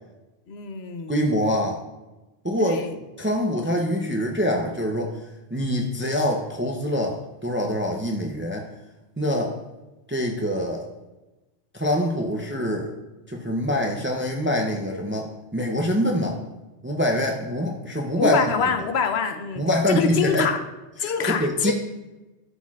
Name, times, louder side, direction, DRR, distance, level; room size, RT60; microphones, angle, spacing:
voice 1, 0.5-1.2 2.7-2.9 18.2-20.6 21.0-21.7, left 6 dB, 75° left, 7 dB, 0.9 m, -25 dB
voice 2, 1.1-1.8 2.4-2.8 3.2-5.1 5.5-8.7 9.2-9.5 10.1-10.9 11.7-12.9 13.3-16.4 16.8-18.5 19.6-20.4 21.0-21.7, equal, 15° right, 1 dB, 0.4 m, -24 dB
11.5 x 4.3 x 2.4 m, 1.0 s
omnidirectional pair, 1.1 m